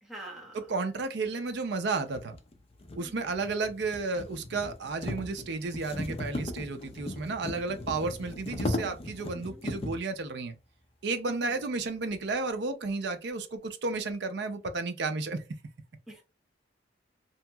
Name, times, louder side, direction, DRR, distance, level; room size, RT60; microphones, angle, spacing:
voice 1, 0.0-0.6 3.0-3.4 9.3-9.6 11.3-11.6 16.1-16.2, right 1 dB, ahead, 0.8 m, -45 dB
voice 2, 0.5-2.4 3.0-10.5 11.0-15.4, right 3 dB, 65° right, 0.5 m, -32 dB
sound 1, 1.2-1.3 2.1-10.1, left 1 dB, 30° left, 0.4 m, -37 dB
2.8 x 2.7 x 2.2 m
head